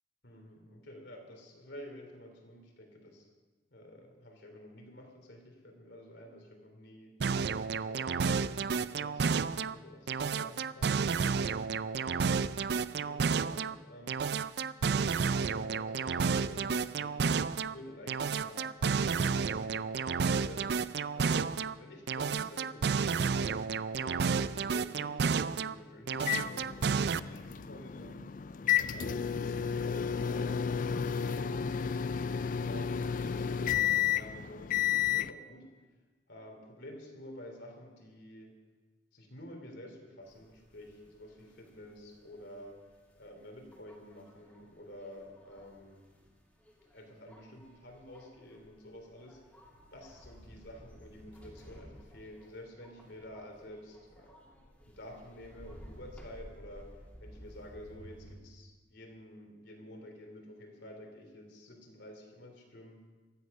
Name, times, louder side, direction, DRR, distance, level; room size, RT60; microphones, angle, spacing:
voice 1, 0.2-3.3 3.7-7.1 7.6-11.0 11.7-12.5 12.8-14.3 14.8-18.7 19.1-20.7 21.1-28.5 28.8-35.7 36.3-38.5 39.1-42.8 43.1-46.1 46.9-49.4 49.9-54.4 54.9-63.0, left 1 dB, 65° left, 2 dB, 3.3 m, -50 dB
sound 1, 7.2-9.8 10.1-13.8 14.1-17.7 18.1-21.7 22.1-25.8 26.1-27.2, right 5 dB, 60° right, 0.4 m, -31 dB
sound 2, 26.2-35.3, left 8 dB, 45° left, 0.4 m, -32 dB
sound 3, 40.2-58.4, equal, 5° left, 2.7 m, -55 dB
16.0 x 13.5 x 5.5 m, 1.3 s
head